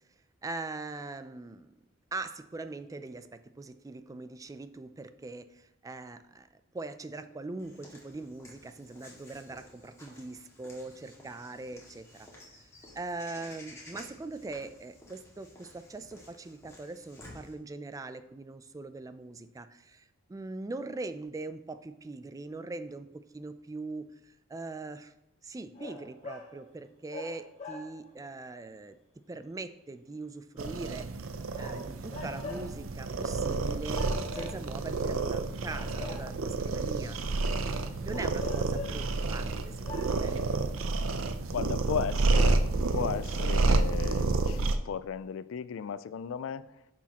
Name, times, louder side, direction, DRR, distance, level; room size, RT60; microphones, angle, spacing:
voice 1, 0.4-1.7 2.1-6.5 6.7-12.5 12.9-25.1 25.4-29.0 29.3-31.2 31.6-37.2 38.0-40.4 43.4-43.6, right 3 dB, 15° right, 11 dB, 0.3 m, -41 dB
Walk footsteps / Bird vocalization bird call bird song, 7.6-17.5, left 1 dB, 15° left, 1.9 m, -53 dB
sound 1, 25.7-26.6 27.1-28.2 31.5-32.8 33.9-35.0 35.6-36.6 38.1-39.1 39.5-39.6 39.8-40.1, left 4 dB, 35° left, 1.5 m, -43 dB
sound 2, 30.6-44.8, right 3 dB, 80° right, 0.6 m, -29 dB
voice 2, 41.5-42.7 42.9-46.7, left 7 dB, 70° left, 16 dB, 0.3 m, -35 dB
10.0 x 6.2 x 2.9 m, 0.86 s
head